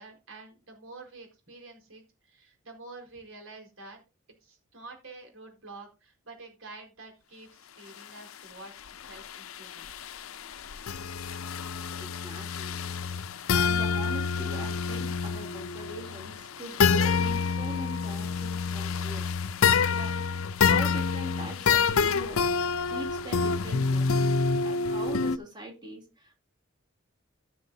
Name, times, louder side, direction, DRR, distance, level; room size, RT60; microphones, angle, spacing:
voice 1, 0.0-4.0 4.4-10.0, right 3 dB, 75° right, 3 dB, 4.6 m, -48 dB
sound 1, 9.1-25.4, left 5 dB, 90° left, 0.6 m, -27 dB
voice 2, 12.0-12.7 13.5-19.3 19.8-20.2 20.6-22.5 22.9-24.4 24.6-26.4, right 1 dB, 20° right, 1 dB, 3.1 m, -42 dB
16.5 x 6.4 x 2.8 m, 0.29 s
head